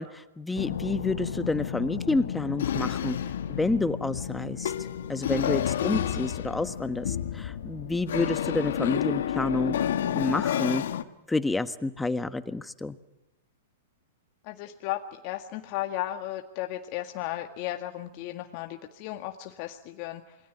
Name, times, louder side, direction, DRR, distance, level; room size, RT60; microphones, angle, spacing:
voice 1, 0.0-3.2 3.5-4.7 5.1-9.9 10.1-10.8 11.3-13.0, left 3 dB, 10° left, 12 dB, 1.4 m, -29 dB
sound 1, 0.6-11.0, left 10 dB, 70° left, 1.6 m, -30 dB
voice 2, 14.4-20.4, left 14 dB, 45° left, 5 dB, 1.9 m, -35 dB
27.5 x 22.5 x 9.5 m, 0.95 s
hypercardioid pair, 115°, 0 cm